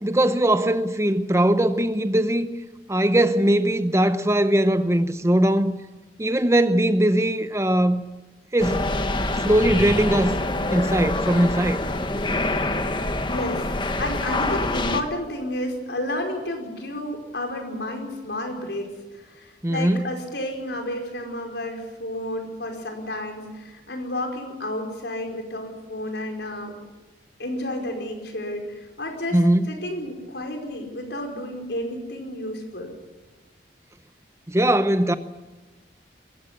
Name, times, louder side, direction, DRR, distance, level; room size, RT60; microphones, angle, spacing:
voice 1, 0.0-2.5 2.9-5.7 6.2-8.0 8.5-9.1 9.4-10.4 10.7-11.8 19.6-20.1 29.3-29.6 34.5-35.1, right 1 dB, 15° right, 0.8 m, -20 dB
sound 1, 8.6-15.0, left 2 dB, 25° left, 1.3 m, -25 dB
voice 2, 12.9-13.7 14.0-26.7 27.4-29.4 29.7-32.9, left 1 dB, 75° left, 5.0 m, -31 dB
22.0 x 15.5 x 10.0 m
head